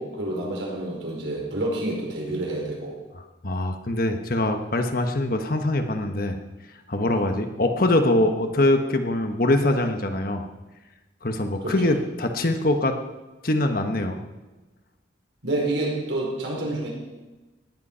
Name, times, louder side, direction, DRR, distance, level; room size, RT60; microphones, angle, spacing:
voice 1, 0.0-3.0 11.6-11.7 15.4-16.9, right 2 dB, 70° right, -1 dB, 5.0 m, -28 dB
voice 2, 3.4-6.4 6.9-10.4 11.2-13.0 13.4-14.2, left 1 dB, 50° left, 5 dB, 1.2 m, -23 dB
18.5 x 10.5 x 5.6 m, 1.1 s
head